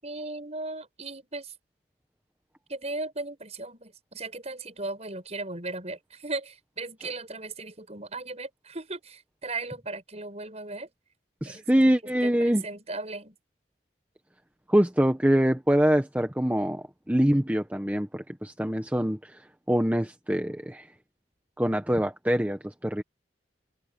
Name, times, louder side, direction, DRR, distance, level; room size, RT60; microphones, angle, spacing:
voice 1, 0.0-1.5 2.7-10.9 11.4-13.4, right 3 dB, 40° right, 7.9 m, -37 dB
voice 2, 11.4-12.6 14.7-19.4 19.7-20.9 21.6-23.0, equal, 10° right, 1.2 m, -24 dB
head